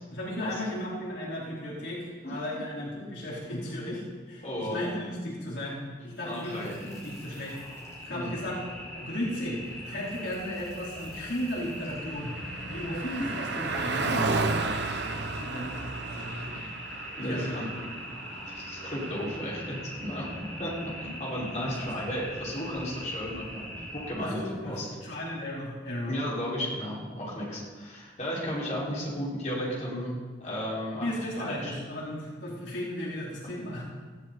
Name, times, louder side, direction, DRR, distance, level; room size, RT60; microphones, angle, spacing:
voice 1, 0.1-7.6 8.0-8.6 8.9-14.5 15.3-15.8 16.2-16.6 17.2-17.6 21.8-21.9 24.2-26.1 30.9-33.8, left 1 dB, 85° left, -5 dB, 4.4 m, -35 dB
voice 2, 4.4-4.8 6.2-6.7 8.1-8.3 17.2-17.7 18.5-24.9 26.1-31.7 33.4-33.5, equal, 40° left, -6 dB, 6.0 m, -34 dB
sound 1, 6.1-24.1, equal, 20° left, 5.7 m, -42 dB
Car passing by, 11.2-22.9, right 3 dB, 75° right, 1.1 m, -35 dB
20.0 x 15.5 x 4.4 m, 1.5 s
head